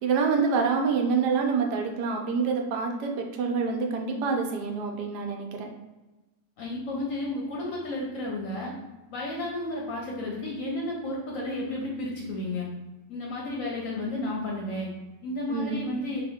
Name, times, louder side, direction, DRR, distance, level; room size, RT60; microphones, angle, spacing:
voice 1, 0.0-5.7 15.5-15.8, right 5 dB, 75° right, 2 dB, 1.1 m, -26 dB
voice 2, 6.6-8.7 9.1-12.7 13.1-14.9 15.2-16.2, left 1 dB, 65° left, -2 dB, 0.9 m, -32 dB
2.8 x 2.4 x 3.5 m, 1.1 s
omnidirectional pair, 1.8 m